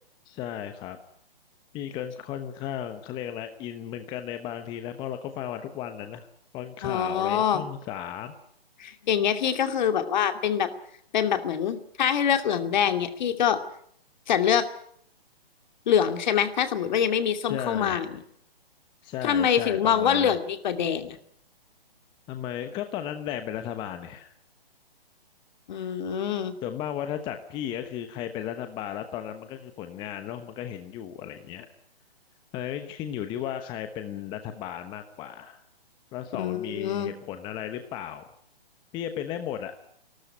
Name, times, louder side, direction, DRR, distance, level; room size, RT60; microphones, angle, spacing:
voice 1, 0.2-1.0 1.7-6.3 6.5-8.3 17.4-18.1 19.0-20.3 22.3-24.3 26.6-31.7 32.5-35.6 36.1-38.3 38.9-39.7, left 10 dB, 15° left, 8 dB, 1.0 m, -35 dB
voice 2, 6.8-7.7 8.8-10.7 11.1-13.6 14.3-14.6 15.9-18.1 19.2-21.2 25.7-26.5 36.3-37.1, left 8 dB, 50° left, 8 dB, 2.6 m, -25 dB
28.0 x 13.0 x 10.0 m, 0.68 s
hypercardioid pair, 150°, 30 cm